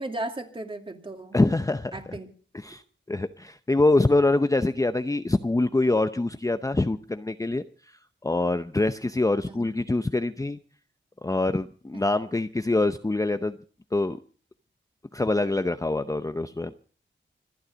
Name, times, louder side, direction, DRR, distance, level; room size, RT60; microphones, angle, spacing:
voice 1, 0.0-1.4 1.9-2.3 9.5-9.7 11.9-12.0, right 2 dB, 25° right, 5 dB, 2.5 m, -35 dB
voice 2, 1.3-2.0 2.6-2.8 3.1-7.6 8.2-10.6 11.2-13.6 13.9-14.2 15.1-16.7, left 2 dB, 15° left, 10 dB, 0.7 m, -24 dB
25.5 x 9.6 x 5.1 m, 0.41 s
wide cardioid pair, 85°, 20 cm